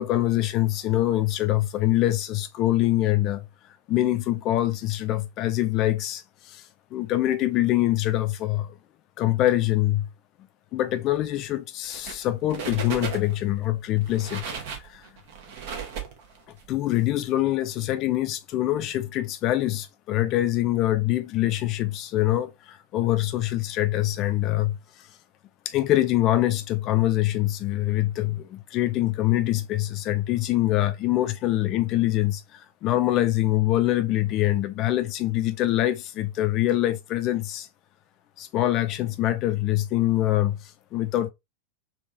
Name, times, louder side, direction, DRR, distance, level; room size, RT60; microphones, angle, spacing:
voice 1, 0.0-3.5 3.9-6.6 6.9-8.8 9.2-10.1 10.7-15.1 16.7-24.8 25.6-37.7 38.4-41.3, left 14 dB, 35° left, 0.5 m, -24 dB
sound 1, 11.8-12.2 12.5-13.5 14.0-16.6, right 6 dB, 50° right, 0.9 m, -35 dB
3.5 x 2.5 x 2.7 m
figure-of-eight pair, 90°, 0 cm